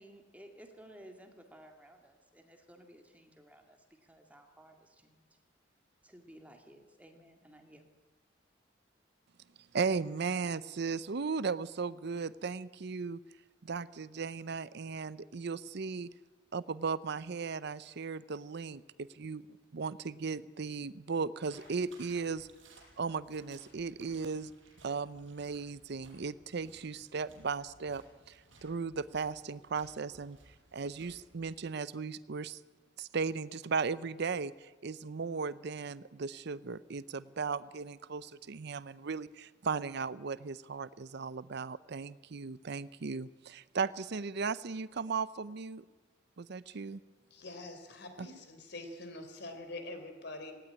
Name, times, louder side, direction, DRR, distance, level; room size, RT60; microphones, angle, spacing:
voice 1, 0.0-5.2 6.0-7.9, right 1 dB, 10° right, 4 dB, 2.0 m, -56 dB
voice 2, 9.7-13.2 13.6-16.1 16.5-19.4 19.7-22.5 23.0-24.5 24.8-28.0 28.3-30.4 30.7-32.6 33.0-45.9 46.4-47.0 48.2-48.3, right 5 dB, 60° right, 17 dB, 0.6 m, -36 dB
sound 1, 21.4-31.6, right 2 dB, 75° right, 6.6 m, -60 dB
voice 3, 47.3-50.5, left 2 dB, 60° left, 6 dB, 3.6 m, -45 dB
18.0 x 17.5 x 9.7 m, 1.3 s
head